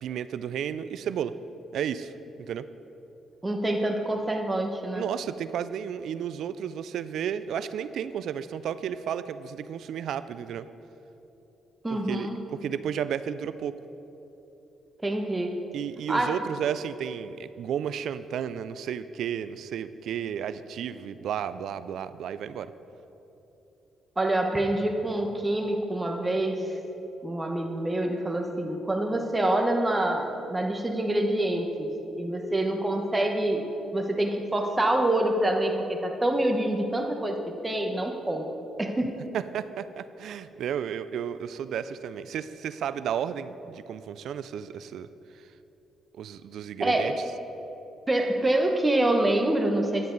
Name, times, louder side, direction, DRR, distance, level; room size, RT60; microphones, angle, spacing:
voice 1, 0.0-1.3 1.7-2.1 2.4-2.7 4.9-10.7 11.9-12.3 12.6-13.7 15.7-22.7 39.3-45.1 46.1-47.1, right 8 dB, 75° right, 14 dB, 0.3 m, -33 dB
voice 2, 3.4-5.1 11.8-12.4 15.0-15.6 16.1-16.4 24.2-26.8 27.2-31.9 32.2-33.6 33.9-37.4 37.6-38.5 38.8-39.2 46.8-47.1 48.1-50.1, right 1 dB, 15° right, 3 dB, 1.1 m, -26 dB
10.5 x 9.2 x 3.9 m, 3.0 s
cardioid pair, 90°, 0 cm